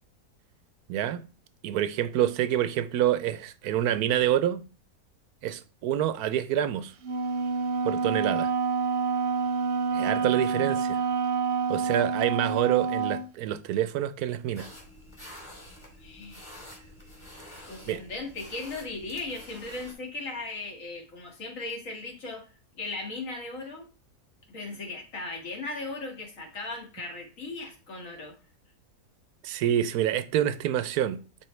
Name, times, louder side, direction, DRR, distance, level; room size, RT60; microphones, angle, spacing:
voice 1, 0.9-1.2 1.6-4.7 5.4-6.9 7.8-8.5 9.9-11.0 11.7-14.7 17.9-18.0 29.4-31.2, right 11 dB, 80° right, 1.1 m, -27 dB
Wind instrument woodwind instrument, 7.0-13.3, right 5 dB, 50° right, 0.9 m, -28 dB
sound 1, 14.5-19.9, left 1 dB, 20° left, 2.2 m, -48 dB
voice 2, 16.0-16.5 17.6-22.5 22.7-23.9 24.5-28.3, left 3 dB, 55° left, 2.2 m, -37 dB
10.0 x 4.0 x 3.2 m
omnidirectional pair, 1.6 m